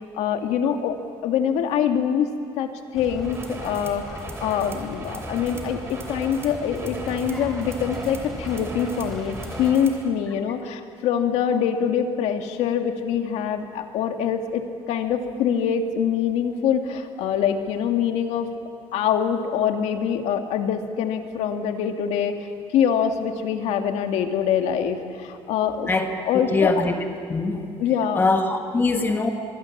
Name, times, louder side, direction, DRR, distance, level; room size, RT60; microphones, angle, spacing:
voice 1, 0.1-1.0 1.2-2.3 2.6-18.5 18.9-25.9 26.2-26.9 27.8-28.2, left 8 dB, 90° left, 5 dB, 2.1 m, -24 dB
sound 1, 2.9-9.7, equal, 5° left, 3.9 m, -37 dB
sound 2, 3.2-10.1, right 3 dB, 25° right, 3.0 m, -39 dB
voice 2, 26.3-26.9 27.3-27.7 28.2-29.3, left 3 dB, 20° left, 4 dB, 1.5 m, -22 dB
25.5 x 23.5 x 7.3 m, 2.4 s
cardioid pair, 170°, 11 cm